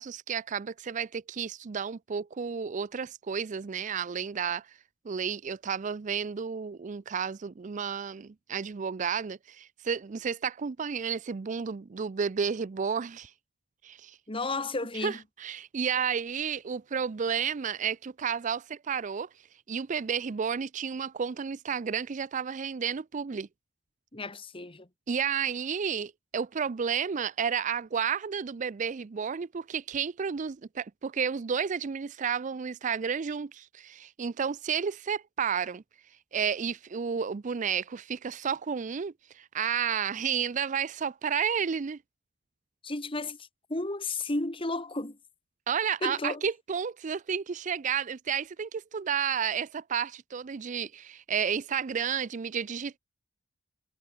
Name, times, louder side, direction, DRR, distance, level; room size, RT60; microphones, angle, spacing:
voice 1, 0.0-4.8 5.0-13.3 13.8-14.2 15.0-19.3 19.7-23.5 25.1-35.8 36.3-42.0 45.7-53.0, right 7 dB, 40° right, 0.4 m, -31 dB
voice 2, 14.3-15.2 24.1-24.9 42.8-45.2 46.0-46.4, left 2 dB, 25° left, 2.2 m, -33 dB
head